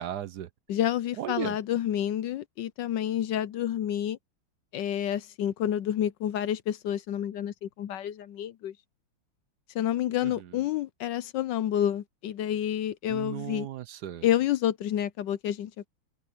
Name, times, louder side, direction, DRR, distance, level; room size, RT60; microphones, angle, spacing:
voice 1, 0.0-0.5 1.2-1.6 10.2-10.3 13.1-14.3, right 11 dB, 65° right, 1.1 m, -35 dB
voice 2, 0.7-4.2 4.7-8.7 9.7-13.7 14.2-15.9, left 11 dB, 70° left, 1.2 m, -29 dB
omnidirectional pair, 2.3 m